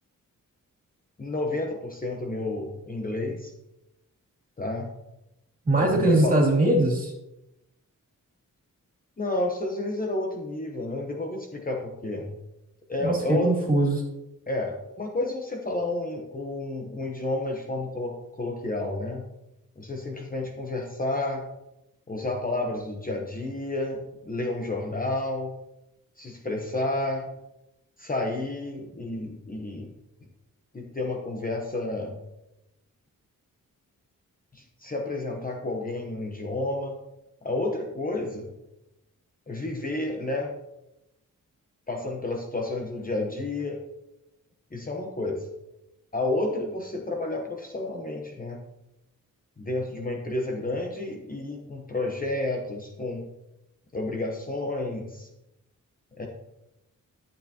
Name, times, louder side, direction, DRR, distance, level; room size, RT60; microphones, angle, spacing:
voice 1, 1.2-3.5 4.6-4.9 5.8-6.5 9.2-12.3 12.9-13.5 14.5-19.3 19.8-21.5 22.1-25.5 26.2-27.3 28.0-29.9 30.7-32.2 34.5-36.9 37.4-38.5 39.5-40.5 41.9-43.8 44.7-45.5 46.1-48.6 49.6-53.3 53.9-55.3 56.2-56.3, left 2 dB, 25° left, 1 dB, 1.0 m, -30 dB
voice 2, 5.6-7.1 13.0-14.0, right 2 dB, 25° right, -2 dB, 2.6 m, -21 dB
11.5 x 8.2 x 2.9 m, 0.90 s
wide cardioid pair, 150°, 33 cm